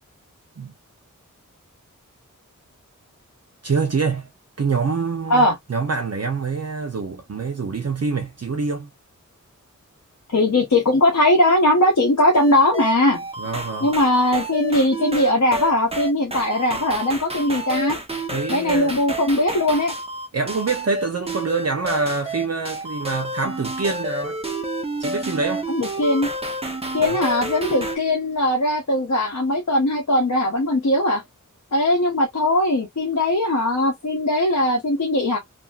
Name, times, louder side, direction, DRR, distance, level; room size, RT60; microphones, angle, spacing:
voice 1, 3.6-4.3 4.6-8.9 13.4-13.9 18.3-19.0 20.3-24.4 25.0-25.7 27.0-27.2, right 4 dB, 50° right, 0.7 m, -25 dB
voice 2, 10.3-13.2 13.8-18.0 18.5-19.9 25.7-26.3 26.9-31.2 31.7-35.4, left 1 dB, 60° left, 0.9 m, -19 dB
sound 1, 12.3-28.0, right 1 dB, 20° right, 0.8 m, -30 dB
2.9 x 2.6 x 2.3 m
wide cardioid pair, 60°, 32 cm